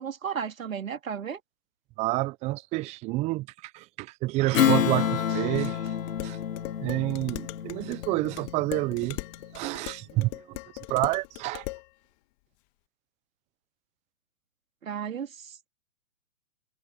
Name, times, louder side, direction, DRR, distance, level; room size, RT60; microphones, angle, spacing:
voice 1, 0.0-1.4 14.8-15.7, right 7 dB, 70° right, 3.4 m, -34 dB
voice 2, 2.0-5.8 6.2-6.4 6.8-9.2 9.5-10.6 10.9-11.6, right 20 dB, 15° right, 0.6 m, -29 dB
Strum, 4.5-9.4, left 9 dB, 75° left, 1.1 m, -28 dB
Dishes pots and pans, 5.5-11.9, left 26 dB, 35° left, 1.6 m, -40 dB
hypercardioid pair, 125°, 41 cm